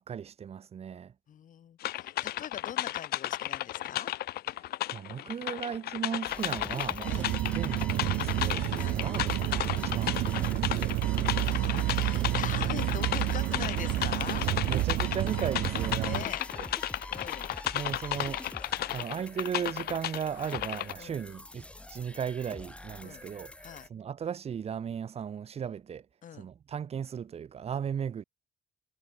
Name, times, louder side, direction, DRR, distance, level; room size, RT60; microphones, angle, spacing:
voice 1, 0.0-1.1 4.6-11.0 14.7-16.7 17.7-26.1 26.3-28.2, right 8 dB, 35° right, 1.0 m, -37 dB
voice 2, 1.3-4.1 7.1-7.3 8.8-9.0 11.4-14.5 16.0-16.4 17.1-17.5 21.0-21.2 23.0-23.3 23.6-23.9 26.2-26.5, left 9 dB, 50° left, 3.7 m, -43 dB
sound 1, 1.8-20.9, left 15 dB, 70° left, 0.9 m, -34 dB
sound 2, 6.3-23.9, left 1 dB, 5° left, 1.7 m, -44 dB
sound 3, 7.0-16.2, right 17 dB, 75° right, 0.7 m, -30 dB
cardioid pair, 110°, 17 cm